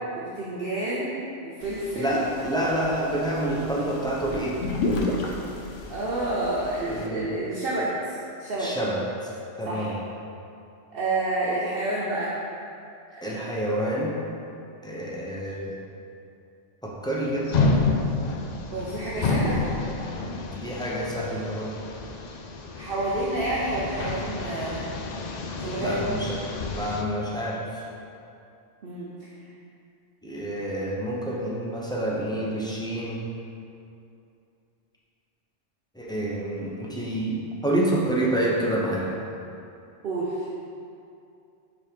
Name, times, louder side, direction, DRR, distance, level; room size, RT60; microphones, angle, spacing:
voice 1, 0.1-2.2 5.9-8.7 9.7-9.9 10.9-12.3 18.7-19.6 22.7-24.8 25.6-26.0 28.8-29.3 40.0-40.5, right 2 dB, 55° right, -6 dB, 0.9 m, -29 dB
sound 1, 1.6-7.1, left 2 dB, 90° left, 1.1 m, -33 dB
voice 2, 1.9-4.6 6.9-7.2 8.6-9.3 9.6-9.9 13.2-14.2 14.8-15.7 16.8-17.5 20.6-21.7 25.8-26.4 26.7-27.8 30.2-33.2 35.9-39.1, right 1 dB, 5° left, -5 dB, 0.7 m, -28 dB
sound 2, 17.5-27.0, left 3 dB, 65° left, 0.4 m, -29 dB
4.8 x 4.5 x 5.1 m, 2.6 s
omnidirectional pair, 1.2 m